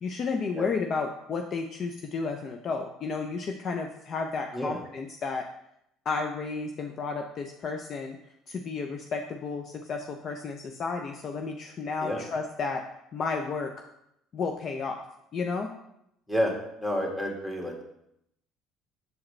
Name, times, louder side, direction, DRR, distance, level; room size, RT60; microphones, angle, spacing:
voice 1, 0.0-5.4 6.1-8.2 8.5-12.8 13.1-13.7 14.3-15.0 15.3-15.7, left 4 dB, 50° left, 4 dB, 0.5 m, -32 dB
voice 2, 16.8-17.8, equal, 10° left, 0 dB, 1.7 m, -29 dB
6.5 x 4.8 x 3.2 m, 0.79 s
supercardioid pair, 75°, 0 cm